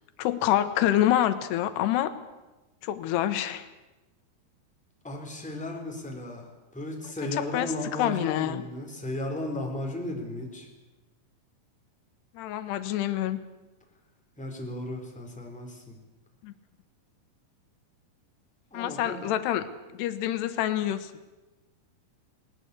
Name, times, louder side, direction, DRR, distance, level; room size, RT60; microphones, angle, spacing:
voice 1, 0.2-2.1 2.8-3.7 7.2-8.6 12.4-13.4 16.4-16.5 18.7-19.6 19.9-21.1, left 12 dB, 90° left, 11 dB, 3.2 m, -27 dB
voice 2, 5.0-6.5 6.7-10.7 14.4-15.9 18.7-19.3, left 1 dB, ahead, 1 dB, 3.2 m, -35 dB
20.5 x 20.0 x 8.3 m, 1.1 s
omnidirectional pair, 4.7 m